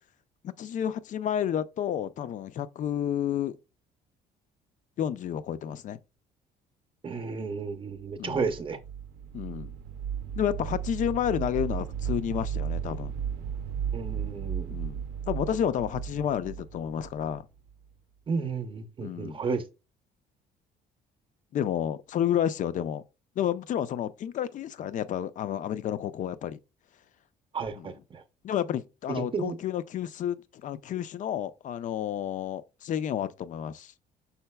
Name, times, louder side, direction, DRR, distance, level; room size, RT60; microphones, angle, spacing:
voice 1, 0.4-3.6 5.0-6.0 8.2-8.5 9.3-9.7 10.4-13.1 14.7-17.5 19.0-19.4 21.5-23.0 23.4-26.6 27.8-27.9 28.4-33.9, left 10 dB, 50° left, 0.4 m, -30 dB
voice 2, 7.0-8.8 13.9-14.8 18.3-19.6 27.5-28.2 29.1-29.6, right 5 dB, 30° right, 0.7 m, -32 dB
sound 1, 8.1-17.9, right 8 dB, 90° right, 0.6 m, -35 dB
5.7 x 3.9 x 2.2 m
cardioid pair, 110°, 17 cm